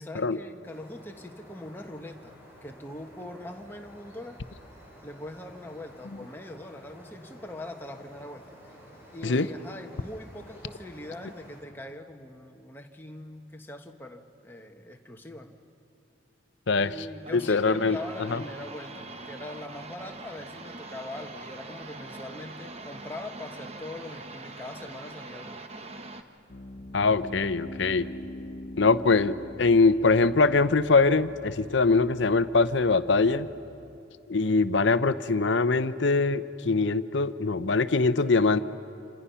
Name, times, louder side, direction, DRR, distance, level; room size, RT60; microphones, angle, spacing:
voice 1, 0.0-4.4 5.0-8.7 9.1-15.5 16.8-25.6, left 1 dB, 10° left, 3 dB, 1.3 m, -42 dB
sound 1, 0.6-11.6, equal, 10° right, 6.5 m, -51 dB
sound 2, 17.1-26.2, right 3 dB, 30° right, 1.0 m, -43 dB
voice 2, 17.3-18.0 18.3-18.4 26.9-28.1 28.8-33.5 34.3-38.6, left 3 dB, 65° left, 13 dB, 0.7 m, -23 dB
Piano, 26.5-34.0, left 1 dB, 45° left, 1.2 m, -44 dB
27.5 x 27.0 x 5.7 m, 2.8 s
head